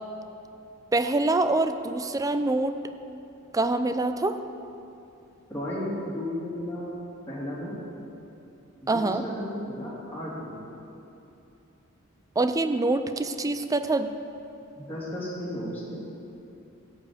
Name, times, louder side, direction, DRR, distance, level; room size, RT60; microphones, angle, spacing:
voice 1, 0.9-2.8 3.5-4.4 8.9-9.2 12.4-14.1, right 2 dB, 15° right, 10 dB, 0.4 m, -25 dB
voice 2, 5.5-6.9 7.3-7.7 8.8-10.7 14.8-16.0, left 1 dB, 10° left, -9 dB, 2.9 m, -34 dB
13.0 x 5.5 x 8.6 m, 2.8 s
head